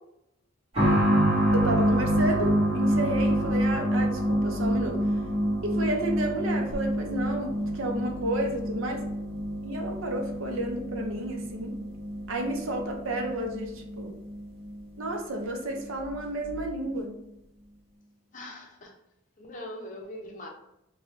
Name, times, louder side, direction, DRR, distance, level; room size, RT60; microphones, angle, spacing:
sound 1, 0.7-15.2 15.4-15.5 16.5-16.6, equal, 30° right, 1.3 m, -27 dB
voice 1, 1.5-5.0 5.6-9.0 9.6-11.7 12.3-14.2 15.0-17.2, right 1 dB, 80° right, 3 dB, 0.6 m, -31 dB
voice 2, 18.3-18.9 19.4-20.5, left 1 dB, 40° left, 1 dB, 0.5 m, -41 dB
3.1 x 2.2 x 3.1 m, 0.83 s
head